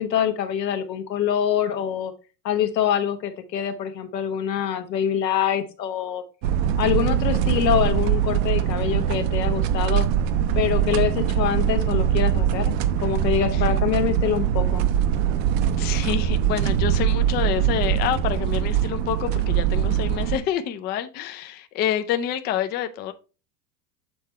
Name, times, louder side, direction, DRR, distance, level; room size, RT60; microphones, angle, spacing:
voice 1, 0.0-2.1 2.4-6.2 6.8-10.0 10.5-12.7 13.0-14.8, left 9 dB, 85° left, 1.2 m, -25 dB
sound 1, 6.4-20.4, right 9 dB, 55° right, 0.7 m, -22 dB
voice 2, 15.8-23.1, left 10 dB, 25° left, 0.4 m, -27 dB
6.8 x 3.6 x 4.3 m
hypercardioid pair, 95°, 49 cm